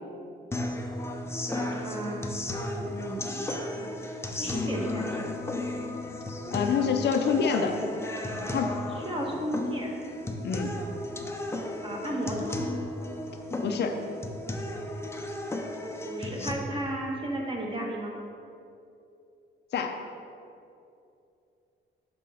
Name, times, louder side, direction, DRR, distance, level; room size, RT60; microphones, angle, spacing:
sound 1, 0.5-16.5, left 1 dB, 15° left, 0.6 m, -34 dB
voice 1, 1.5-2.3 2.8-3.8 4.4-5.2 8.9-10.0 11.8-12.6 16.0-18.1, right 1 dB, 25° right, -1 dB, 1.4 m, -34 dB
voice 2, 6.5-7.8 8.5-8.7 10.4-10.7 13.6-14.0 19.7-20.0, left 6 dB, 60° left, 5 dB, 0.6 m, -26 dB
6.2 x 5.5 x 4.2 m, 2.6 s
cardioid pair, 90°, 20 cm